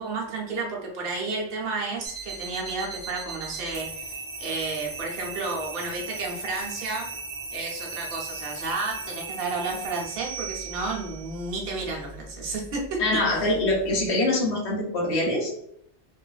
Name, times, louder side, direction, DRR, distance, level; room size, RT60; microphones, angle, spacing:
voice 1, 0.0-7.1 7.5-13.0, right 3 dB, 60° right, -2 dB, 0.9 m, -32 dB
sound 1, 2.0-14.1, right 3 dB, 35° right, 0.9 m, -38 dB
voice 2, 13.0-15.6, left 2 dB, 70° left, -2 dB, 1.1 m, -24 dB
2.4 x 2.4 x 2.3 m, 0.74 s
omnidirectional pair, 1.2 m